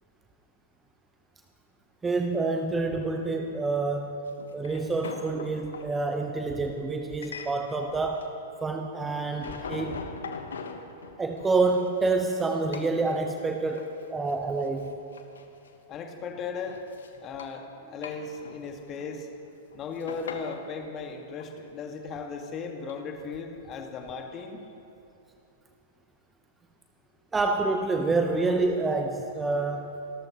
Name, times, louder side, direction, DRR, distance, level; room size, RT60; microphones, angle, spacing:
voice 1, 2.0-4.2 4.5-8.3 8.6-10.1 11.2-14.9 27.3-29.9, right 3 dB, 10° right, 4 dB, 0.9 m, -27 dB
sound 1, 4.3-5.9 7.2-7.9 8.1-8.9 9.1-12.4 12.7-13.0 13.4-14.0 14.3-14.4 14.6-15.7 16.1-17.6 17.9-19.2 19.5-20.7 21.4-21.6 22.9-23.0, left 5 dB, 65° left, 1.2 m, -42 dB
voice 2, 15.9-16.8 17.2-19.3 19.7-24.6, left 5 dB, 30° left, 4 dB, 1.8 m, -37 dB
29.0 x 14.0 x 3.0 m, 2.9 s
figure-of-eight pair, 100°, 0 cm